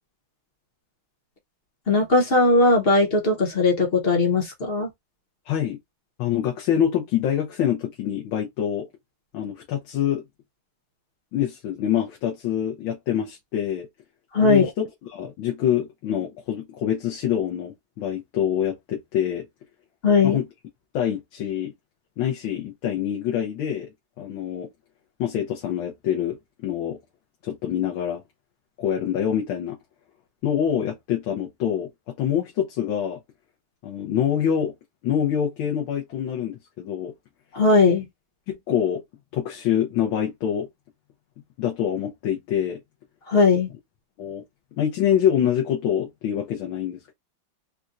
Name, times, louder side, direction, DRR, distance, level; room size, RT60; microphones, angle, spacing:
voice 1, 1.9-4.9 14.3-14.6 20.0-20.4 37.5-38.1 43.3-43.7, left 3 dB, 40° left, 1.0 m, -18 dB
voice 2, 5.5-5.8 6.2-8.9 9.3-10.2 11.3-13.9 14.4-14.8 15.1-19.5 20.2-20.4 20.9-21.7 22.2-23.9 24.2-24.7 25.2-27.0 27.4-28.2 28.8-29.8 30.4-31.9 32.2-33.2 33.8-34.7 35.0-37.1 38.5-39.0 39.3-40.7 41.6-42.8 44.2-44.4 44.8-47.1, left 9 dB, 90° left, 1.6 m, -25 dB
4.3 x 2.3 x 2.5 m
omnidirectional pair, 2.1 m